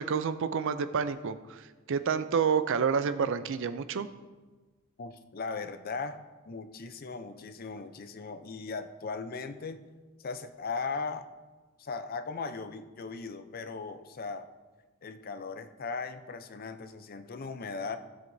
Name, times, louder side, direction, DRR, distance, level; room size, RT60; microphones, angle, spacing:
voice 1, 0.0-4.1, right 6 dB, 60° right, 12 dB, 0.4 m, -29 dB
voice 2, 5.0-9.8 10.2-11.3 11.8-14.5 15.0-18.0, left 4 dB, 40° left, 10 dB, 0.5 m, -38 dB
15.5 x 7.5 x 2.7 m, 1.3 s
head